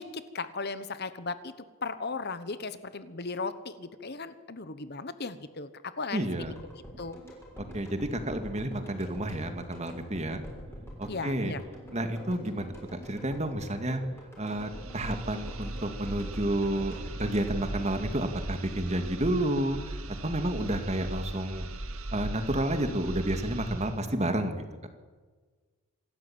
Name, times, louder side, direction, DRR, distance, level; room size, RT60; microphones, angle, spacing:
voice 1, 0.0-1.5 1.8-5.7 6.0-6.5 7.0-7.2 11.1-11.6, left 4 dB, 45° left, 13 dB, 1.1 m, -36 dB
voice 2, 6.1-6.5 7.7-10.4 11.0-11.5 11.9-14.0 14.4-21.7 22.1-24.6, right 1 dB, 30° right, 7 dB, 2.1 m, -30 dB
sound 1, 6.4-18.6 18.9-19.0, equal, 10° left, 6.3 m, -47 dB
sound 2, 14.4-24.1, right 2 dB, 70° right, 2.0 m, -39 dB
26.5 x 13.0 x 8.9 m, 1.4 s
head